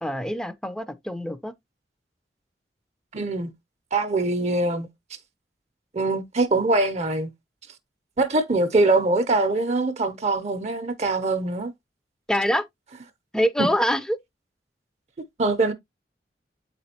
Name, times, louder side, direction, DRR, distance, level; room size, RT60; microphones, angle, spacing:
voice 1, 0.0-1.5 12.3-12.6 13.3-14.2, equal, 5° left, 0.5 m, -25 dB
voice 2, 3.1-3.5 3.9-4.9 5.9-7.3 8.2-11.7 13.6-13.7 15.4-15.7, right 2 dB, 40° right, 0.6 m, -23 dB
8.4 x 4.1 x 2.8 m
head